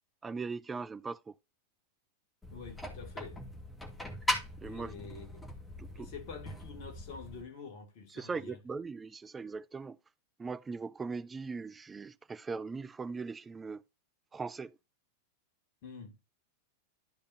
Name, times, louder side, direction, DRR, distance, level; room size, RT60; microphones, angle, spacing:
voice 1, 0.2-1.3 4.6-5.0 5.8-6.1 8.1-10.0 10.4-13.8 14.3-14.8, right 4 dB, 15° right, 0.5 m, -40 dB
sound 1, 2.4-7.4, left 1 dB, 10° left, 2.4 m, -39 dB
voice 2, 2.5-3.5 4.6-5.3 5.9-8.6 15.8-16.2, left 5 dB, 45° left, 2.6 m, -47 dB
13.0 x 5.0 x 2.7 m
figure-of-eight pair, 90°, 0 cm